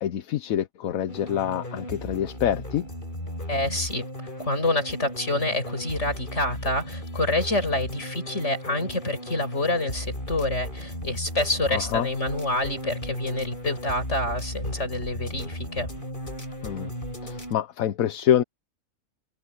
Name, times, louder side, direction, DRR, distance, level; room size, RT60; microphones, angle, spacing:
voice 1, 0.0-2.8 11.7-12.1 16.6-16.9 17.2-18.4, left 10 dB, 85° left, 1.2 m, -26 dB
sound 1, 1.1-17.5, equal, 35° left, 7.7 m, -36 dB
voice 2, 3.5-4.1 4.4-15.9, left 2 dB, 55° left, 6.6 m, -27 dB
omnidirectional pair, 1.4 m